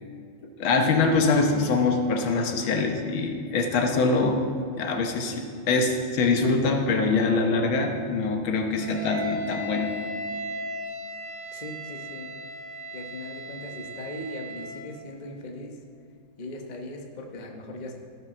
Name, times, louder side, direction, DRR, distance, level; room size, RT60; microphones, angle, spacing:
voice 1, 0.6-4.4 4.8-9.9, left 3 dB, 80° left, 4 dB, 1.8 m, -24 dB
Wind instrument woodwind instrument, 8.8-14.9, equal, 70° right, 2.3 m, -36 dB
voice 2, 11.5-12.3 12.9-15.8 16.4-17.9, left 1 dB, 30° left, 2 dB, 0.8 m, -39 dB
14.5 x 5.5 x 6.1 m, 2.3 s
omnidirectional pair, 2.2 m